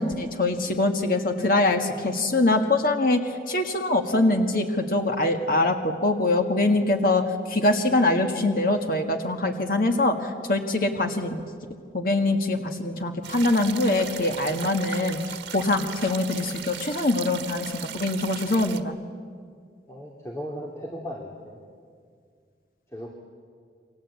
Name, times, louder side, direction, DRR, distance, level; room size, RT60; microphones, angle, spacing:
voice 1, 0.0-7.2 7.5-11.4 11.9-18.9, left 2 dB, 50° left, 4 dB, 1.7 m, -23 dB
sound 1, 13.2-18.8, right 9 dB, 90° right, 1.5 m, -37 dB
voice 2, 19.9-21.6 22.9-23.1, equal, 15° left, -1 dB, 2.6 m, -36 dB
29.0 x 24.5 x 8.5 m, 2.1 s
head